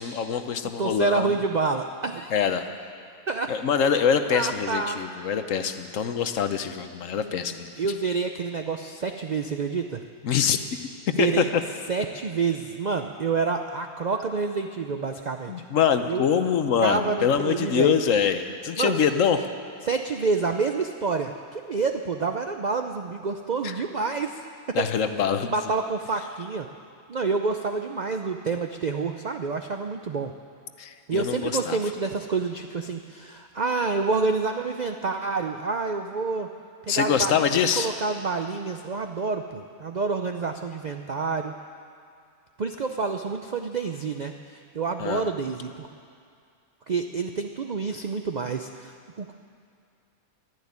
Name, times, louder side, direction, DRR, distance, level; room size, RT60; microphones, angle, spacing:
voice 1, 0.0-1.3 2.3-2.7 3.5-7.7 10.2-10.8 11.2-11.4 15.5-19.4 23.6-23.7 24.7-25.5 30.8-31.8 36.9-37.9 45.0-45.3, left 7 dB, 65° left, 9 dB, 1.1 m, -24 dB
voice 2, 0.8-2.3 3.3-3.5 4.3-5.0 7.8-10.0 11.1-11.5 11.9-15.5 16.1-16.2 16.8-18.0 18.8-19.0 19.8-24.4 24.8-24.9 25.5-26.7 27.1-30.3 31.1-36.5 36.8-41.5 42.6-45.9 46.9-49.3, right 4 dB, 60° right, 5 dB, 0.4 m, -28 dB
12.0 x 11.0 x 9.5 m, 2.3 s
omnidirectional pair, 1.5 m